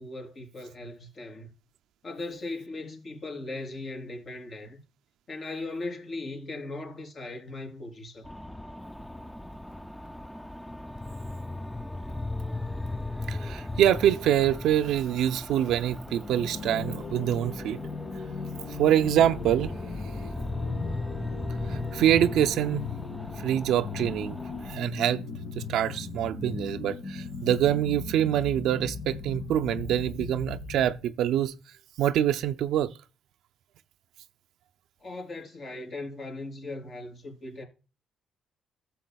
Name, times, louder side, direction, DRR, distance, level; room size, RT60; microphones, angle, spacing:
voice 1, 0.0-1.5 2.0-4.8 5.3-8.3 35.0-37.6, left 2 dB, 50° left, 3.7 m, -38 dB
sound 1, 8.2-24.8, left 2 dB, 5° left, 0.4 m, -37 dB
voice 2, 13.3-17.8 18.8-19.7 21.7-22.8 23.4-24.4 24.7-25.2 25.6-31.6 32.0-32.9, right 11 dB, 80° right, 0.5 m, -25 dB
sound 2, 16.1-31.0, left 4 dB, 65° left, 2.2 m, -38 dB
13.0 x 7.1 x 2.3 m
cardioid pair, 75°, 0 cm